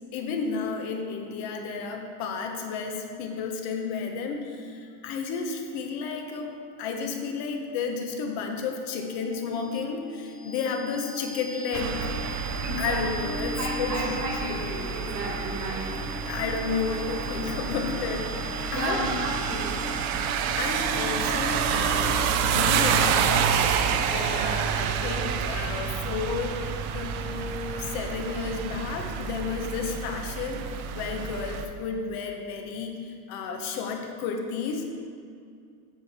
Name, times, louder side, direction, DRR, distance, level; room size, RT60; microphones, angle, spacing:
voice 1, 0.1-12.0 12.8-14.4 16.2-18.3 18.7-19.0 20.6-34.9, left 5 dB, 55° left, 3 dB, 1.0 m, -32 dB
sound 1, 8.7-22.6, left 2 dB, 25° left, 1.5 m, -40 dB
sound 2, 11.7-31.7, right 7 dB, 80° right, 0.7 m, -28 dB
voice 2, 12.6-13.1 13.6-15.9 18.7-19.7, right 1 dB, 40° right, -1 dB, 1.7 m, -32 dB
sound 3, 15.9-23.3, right 1 dB, 15° right, 1.2 m, -44 dB
8.5 x 5.8 x 4.3 m, 2.3 s
cardioid pair, 155°, 43 cm